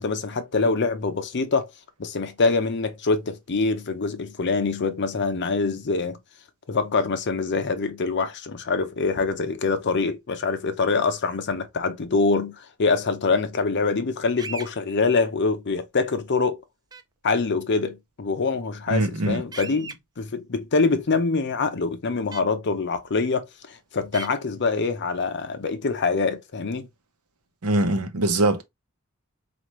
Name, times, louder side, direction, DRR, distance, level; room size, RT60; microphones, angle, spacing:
voice 1, 0.0-1.7 2.0-6.2 6.7-16.6 17.2-26.9, left 4 dB, 55° left, 0.7 m, -25 dB
sound 1, 14.4-14.7 16.9-17.0 19.5-19.9 22.3-22.4 24.1-24.3, right 4 dB, 20° right, 0.4 m, -36 dB
voice 2, 18.9-19.4 27.6-28.6, right 2 dB, 75° right, 0.8 m, -22 dB
4.2 x 2.5 x 3.0 m
head